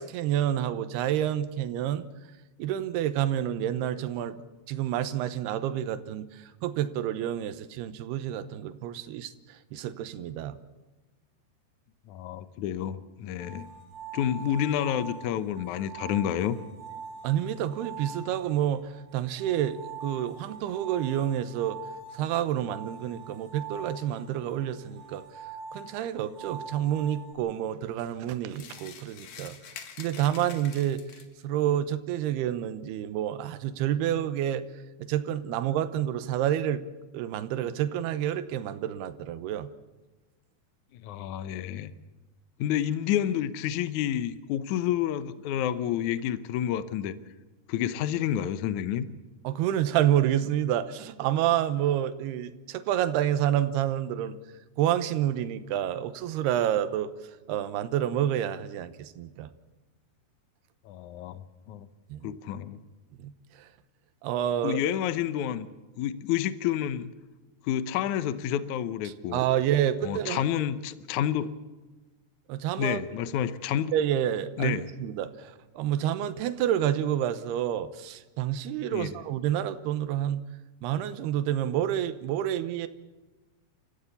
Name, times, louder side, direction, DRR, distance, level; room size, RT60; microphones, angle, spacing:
voice 1, 0.0-2.1 2.6-4.4 4.7-10.6 17.2-21.8 22.1-25.2 25.7-29.6 30.0-31.0 31.4-34.7 35.0-36.8 37.1-39.7 49.4-54.4 54.8-57.1 57.5-59.5 62.1-62.3 63.2-63.3 63.6-63.7 64.2-64.8 69.1-70.5 72.5-73.0 73.9-80.4 80.8-82.9, right 11 dB, 85° right, 12 dB, 3.0 m, -29 dB
voice 2, 12.1-13.7 14.1-16.6 40.9-41.9 42.6-47.2 47.7-49.1 60.9-61.9 62.2-62.8 64.6-65.7 66.0-67.1 67.6-69.4 70.0-71.5 72.8-73.9 74.6-74.9 78.9-79.1, left 10 dB, 75° left, 13 dB, 1.7 m, -29 dB
sound 1, 13.4-27.3, right 5 dB, 25° right, 7.4 m, -44 dB
sound 2, 28.5-31.4, left 8 dB, 60° left, 2.9 m, -46 dB
29.0 x 15.0 x 7.1 m, 1.2 s
omnidirectional pair, 4.6 m